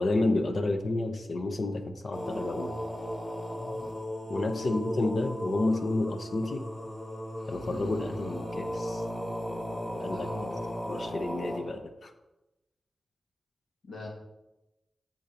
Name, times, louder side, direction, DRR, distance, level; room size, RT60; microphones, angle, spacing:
voice 1, 0.0-2.7 4.3-6.6 7.5-9.0 10.0-10.3 10.9-12.1, left 2 dB, 60° left, 7 dB, 0.9 m, -30 dB
sound 1, 2.1-11.6, equal, 30° left, 1.7 m, -36 dB
voice 2, 4.5-4.8 10.0-10.6 13.8-14.1, left 2 dB, 80° left, -2 dB, 2.2 m, -42 dB
8.4 x 7.3 x 3.0 m, 1.0 s
cardioid pair, 70°, 0 cm